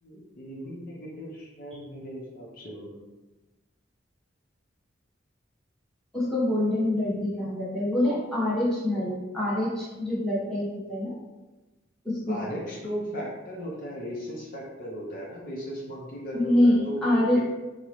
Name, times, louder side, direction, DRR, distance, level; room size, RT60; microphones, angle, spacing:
voice 1, 0.0-3.0 12.3-17.4, equal, 45° left, -4 dB, 0.5 m, -37 dB
voice 2, 6.1-11.1 12.0-12.4 16.3-16.8 17.0-17.4, left 1 dB, 5° left, -9 dB, 0.9 m, -25 dB
3.6 x 2.0 x 2.9 m, 1.2 s
head